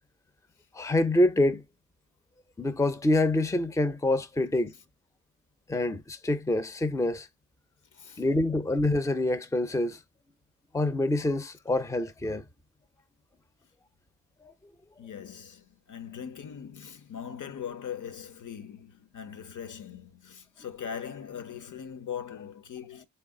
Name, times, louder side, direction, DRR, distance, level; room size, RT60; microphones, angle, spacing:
voice 1, 0.7-1.6 2.6-4.7 5.7-7.3 8.2-10.0 10.7-12.4, left 1 dB, 10° left, 0.6 m, -26 dB
voice 2, 7.9-8.3 15.0-23.1, left 8 dB, 60° left, 0.9 m, -40 dB
3.8 x 3.4 x 3.7 m
cardioid pair, 65°, 35 cm